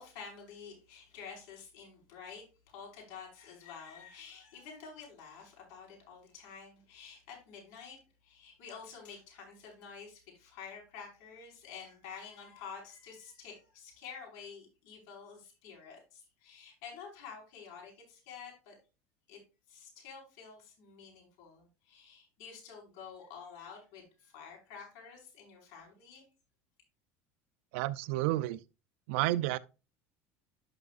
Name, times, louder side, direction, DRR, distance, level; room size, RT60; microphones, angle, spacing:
voice 1, 0.0-8.0 8.2-18.7 19.3-19.4 19.7-26.2, left 6 dB, 75° left, 5.2 m, -49 dB
voice 2, 27.7-28.6 29.1-29.6, right 16 dB, 80° right, 0.5 m, -30 dB
11.5 x 5.8 x 2.5 m
cardioid pair, 140°, 7 cm